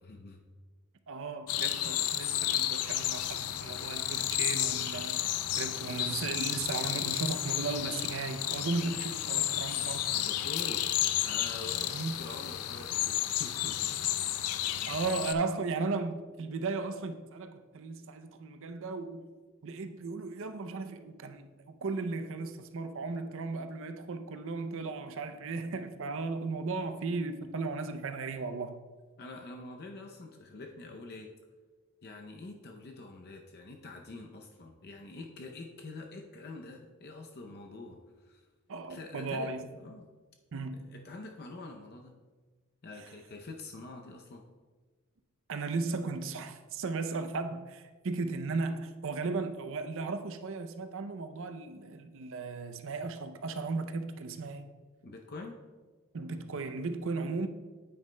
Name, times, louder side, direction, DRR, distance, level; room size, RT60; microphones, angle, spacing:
voice 1, 0.0-0.4 10.1-15.0 29.2-31.3 32.0-38.5 38.9-40.1 40.9-42.1 42.8-44.4 55.0-55.6 56.4-56.5, left 2 dB, 45° left, 0.6 m, -46 dB
voice 2, 1.1-10.1 11.8-12.2 14.9-19.3 19.6-28.8 38.7-39.6 40.5-40.9 45.5-54.8 56.1-57.5, right 3 dB, 60° right, 0.5 m, -36 dB
sound 1, 1.5-15.3, left 12 dB, 90° left, 0.4 m, -32 dB
9.1 x 9.0 x 2.2 m
head